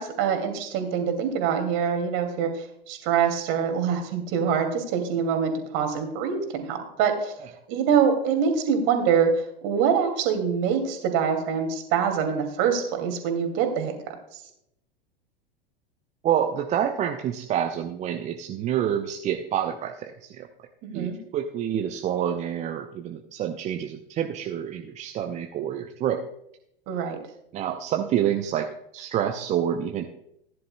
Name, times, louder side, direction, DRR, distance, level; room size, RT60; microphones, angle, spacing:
voice 1, 0.0-7.3 7.7-13.9 20.8-21.2 26.9-27.2, right 7 dB, 40° right, 5 dB, 2.4 m, -25 dB
voice 2, 16.2-20.5 20.9-26.2 27.5-28.7 28.9-30.1, right 10 dB, 25° right, 5 dB, 0.6 m, -27 dB
16.5 x 10.5 x 2.2 m, 0.77 s
figure-of-eight pair, 90°, 30 cm